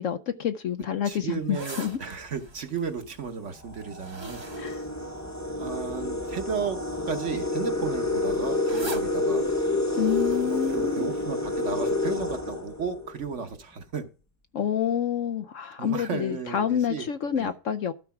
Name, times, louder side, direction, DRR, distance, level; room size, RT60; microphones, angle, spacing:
voice 1, 0.0-2.0 4.6-4.8 10.0-11.1 14.5-17.9, left 8 dB, 65° left, 0.8 m, -28 dB
voice 2, 1.0-4.4 5.6-6.8 7.1-9.5 10.5-14.1 15.8-17.1 17.4-17.5, right 6 dB, 50° right, 1.3 m, -34 dB
sound 1, 1.3-5.8 6.5-6.8 7.1-11.7 12.1-12.2, right 2 dB, 20° right, 0.8 m, -43 dB
sound 2, 1.9-2.2 3.0-3.1 3.6-13.3, left 2 dB, 20° left, 0.4 m, -29 dB
12.5 x 4.6 x 5.9 m
omnidirectional pair, 1.7 m